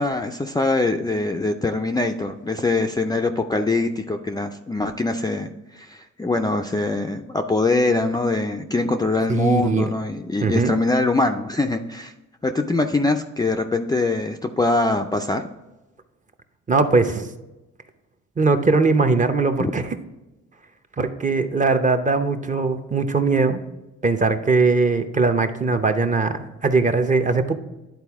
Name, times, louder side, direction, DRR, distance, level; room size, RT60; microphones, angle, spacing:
voice 1, 0.0-12.1 12.4-15.5 19.6-19.7, left 2 dB, 15° left, 3 dB, 0.4 m, -23 dB
voice 2, 9.3-9.9 10.4-10.8 16.7-17.3 18.4-19.8 21.0-23.6 24.0-27.5, right 4 dB, 25° right, 7 dB, 0.7 m, -20 dB
10.5 x 4.1 x 3.5 m, 1.0 s
cardioid pair, 90°, 30 cm